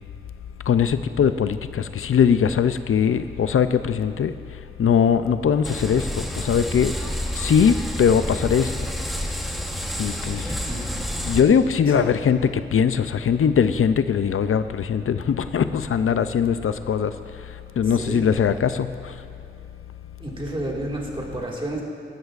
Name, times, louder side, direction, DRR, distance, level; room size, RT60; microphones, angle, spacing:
voice 1, 0.7-4.3 4.8-6.9 7.4-8.7 10.0-10.4 11.2-17.1 17.8-18.9, left 7 dB, 80° left, 11 dB, 0.4 m, -20 dB
sound 1, 5.6-11.4, equal, ahead, 1.0 m, -29 dB
voice 2, 10.4-10.9 11.9-12.1 17.8-18.7 20.2-21.8, right 1 dB, 25° right, -2 dB, 1.9 m, -31 dB
17.5 x 13.0 x 2.4 m, 2.7 s
wide cardioid pair, 100°, 21 cm